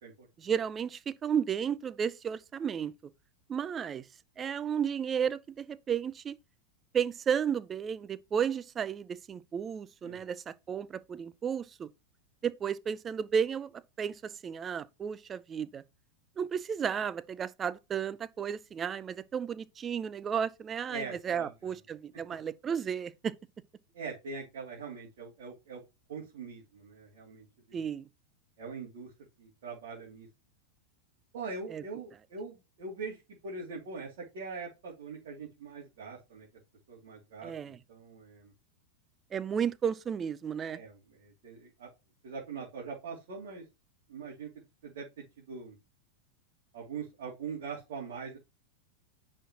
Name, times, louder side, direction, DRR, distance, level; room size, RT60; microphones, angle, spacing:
voice 1, 0.4-2.9 3.5-4.1 4.4-6.4 6.9-11.9 12.4-13.7 14.0-15.8 16.4-23.3 27.7-28.1 31.7-31.8 37.4-37.8 39.3-40.8, right 7 dB, 20° right, 0.5 m, -33 dB
voice 2, 20.9-21.7 23.9-25.8 26.1-27.8 28.6-29.1 29.4-30.3 31.3-36.5 36.9-38.5 40.7-41.9 42.2-43.6 44.1-45.8 46.7-48.4, right 4 dB, 55° right, 2.5 m, -42 dB
10.0 x 4.3 x 2.9 m
figure-of-eight pair, 90°, 0 cm